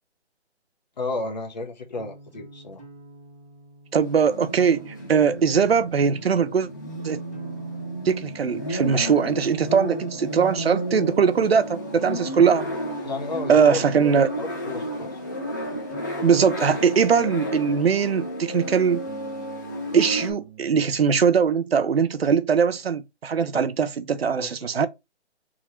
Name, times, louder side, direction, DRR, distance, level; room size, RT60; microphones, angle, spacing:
voice 1, 1.0-2.8 13.0-15.2 23.5-23.6 24.4-24.8, left 2 dB, 40° left, 1.3 m, -33 dB
sound 1, 1.9-18.2 19.0-21.0, right 4 dB, ahead, 1.3 m, -49 dB
voice 2, 3.9-6.7 7.0-7.2 8.0-12.7 13.5-14.3 16.2-19.0 19.9-24.9, right 6 dB, 60° right, 0.7 m, -21 dB
sound 2, 4.0-20.3, equal, 15° left, 0.7 m, -33 dB
3.7 x 3.1 x 4.4 m
hypercardioid pair, 175°, 34 cm